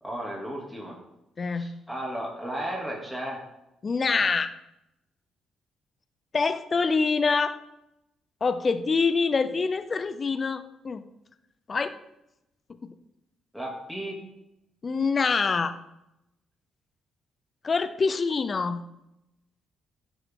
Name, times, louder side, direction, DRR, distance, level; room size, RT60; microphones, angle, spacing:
voice 1, 0.0-1.0 1.5-3.4 13.5-14.2, right 1 dB, 5° left, -3 dB, 2.8 m, -34 dB
voice 2, 1.4-1.8 3.8-4.5 6.3-7.6 8.4-11.0 11.7-12.0 12.8-12.9 14.8-15.8 17.6-18.8, left 4 dB, 35° left, 12 dB, 0.6 m, -25 dB
11.5 x 6.5 x 3.8 m, 0.87 s
cardioid pair, 90°, 0 cm